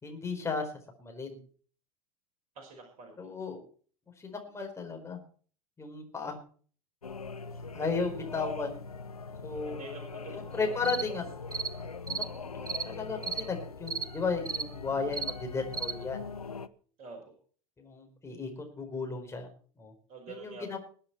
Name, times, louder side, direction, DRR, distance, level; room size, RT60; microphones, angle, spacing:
voice 1, 0.0-0.7 1.0-1.4 3.2-3.6 4.2-5.2 5.8-6.4 7.7-8.8 9.4-9.8 10.3-11.3 11.8-16.2 17.8-19.5 19.8-19.9 20.3-20.8, left 4 dB, 15° left, 3 dB, 4.5 m, -35 dB
voice 2, 2.6-3.3 9.7-10.5 17.0-17.2 20.1-20.8, right 3 dB, 40° right, 1 dB, 5.4 m, -46 dB
sound 1, 7.0-16.7, left 4 dB, 80° left, 0.8 m, -42 dB
sound 2, 10.8-11.1 11.5-11.7 12.1-12.3 12.7-12.9 13.2-13.5 13.9-14.1 14.5-14.7 15.1-15.4 15.7-15.9, right 5 dB, 85° right, 1.2 m, -34 dB
21.5 x 8.8 x 4.4 m, 0.43 s
figure-of-eight pair, 85°, 18 cm